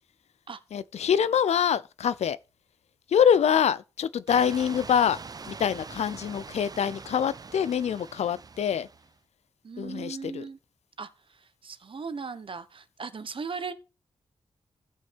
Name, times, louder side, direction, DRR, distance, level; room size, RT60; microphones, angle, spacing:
voice 1, 0.7-2.4 3.1-5.2 5.5-8.9 9.8-10.4, left 8 dB, 85° left, 0.5 m, -25 dB
sound 1, 4.3-9.2, right 4 dB, 35° right, 0.4 m, -43 dB
voice 2, 9.6-10.6 11.0-13.7, right 5 dB, 55° right, 1.0 m, -38 dB
16.0 x 5.5 x 3.4 m
cardioid pair, 75°, 11 cm